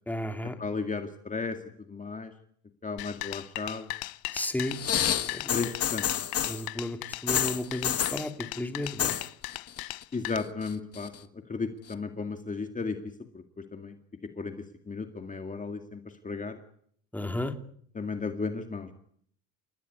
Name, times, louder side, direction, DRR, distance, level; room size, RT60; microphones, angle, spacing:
voice 1, 0.1-0.6 4.3-4.7 5.3-5.5 6.5-9.1 17.1-17.5, left 1 dB, 5° left, 6 dB, 2.5 m, -33 dB
voice 2, 0.6-1.6 1.9-2.3 2.8-3.9 5.5-6.1 10.1-11.1 11.5-13.0 13.3-13.4 13.7-14.0 14.4-14.5 14.9-16.6 17.9-18.9, left 4 dB, 20° left, 5 dB, 2.1 m, -34 dB
sound 1, 3.0-10.4, left 20 dB, 85° left, 1.0 m, -38 dB
sound 2, 4.7-6.6 7.3-8.2 8.8-9.3 9.5-10.0 10.4-11.2 11.9-12.0, left 9 dB, 40° left, 1.7 m, -29 dB
29.0 x 16.0 x 9.6 m, 0.65 s
cardioid pair, 115°, 36 cm